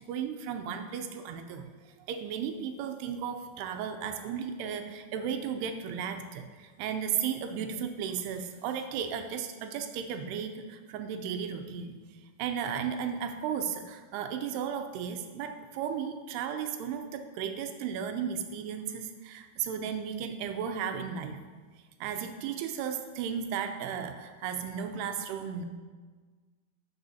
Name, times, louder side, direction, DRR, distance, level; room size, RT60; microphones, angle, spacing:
voice 1, 0.1-1.6 2.1-12.0 12.4-21.4 22.0-25.7, right 7 dB, 85° right, 7 dB, 2.7 m, -35 dB
12.0 x 6.1 x 2.7 m, 1.4 s
omnidirectional pair, 4.7 m